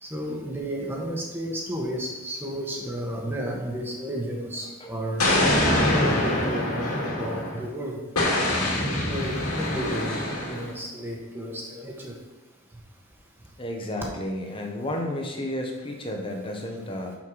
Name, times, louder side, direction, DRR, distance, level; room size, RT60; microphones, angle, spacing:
voice 1, 0.0-5.3 5.8-8.0 8.7-8.8 9.1-10.2 10.5-12.1, equal, 10° right, -1 dB, 1.4 m, -32 dB
Explosion, 5.2-7.6 8.2-10.7, left 1 dB, 90° left, 2.3 m, -24 dB
voice 2, 13.6-17.2, left 1 dB, 25° left, 1 dB, 1.1 m, -32 dB
6.1 x 5.7 x 6.1 m, 1.1 s
head